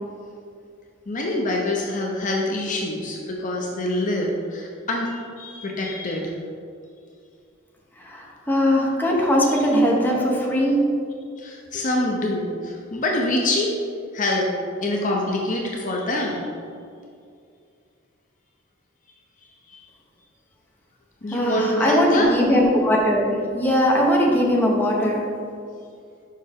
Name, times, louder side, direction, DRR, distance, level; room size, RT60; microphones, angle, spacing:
voice 1, 1.1-6.3 9.5-9.6 11.4-13.8 14.1-14.5 14.8-16.5 19.7-19.8 21.2-22.4, left 1 dB, 40° left, -1 dB, 0.6 m, -25 dB
voice 2, 8.0-10.9 21.3-25.2, equal, 10° left, -3 dB, 0.9 m, -20 dB
6.5 x 5.3 x 3.5 m, 2.3 s
head